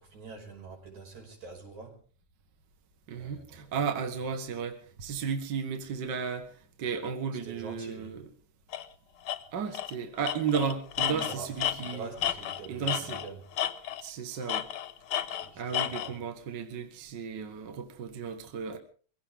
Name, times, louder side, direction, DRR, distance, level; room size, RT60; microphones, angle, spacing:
voice 1, 0.0-2.0 3.1-3.7 7.4-8.1 11.1-13.4 15.3-16.1, right 4 dB, 75° right, 6.7 m, -45 dB
voice 2, 3.1-6.5 6.8-8.3 9.5-12.1 12.7-13.2 14.0-14.7 15.6-18.8, right 6 dB, 45° right, 2.0 m, -34 dB
Tools, 8.7-8.9 9.3-9.4 9.7-9.9 10.2-13.3 13.6-14.1 14.5-16.1, left 11 dB, 65° left, 1.5 m, -32 dB
23.0 x 16.5 x 3.7 m
omnidirectional pair, 3.3 m